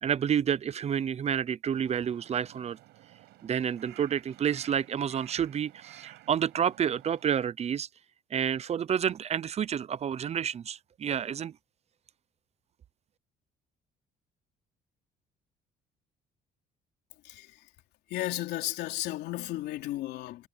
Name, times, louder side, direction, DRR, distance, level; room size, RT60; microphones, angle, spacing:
voice 1, 0.0-2.8 3.4-7.9 8.3-11.5, right 8 dB, 40° right, 0.7 m, -29 dB
Crow, 1.7-7.2, right 17 dB, 85° right, 5.7 m, -54 dB
voice 2, 17.2-17.7 18.1-20.5, left 15 dB, 80° left, 3.4 m, -34 dB
cardioid pair, 110°, 17 cm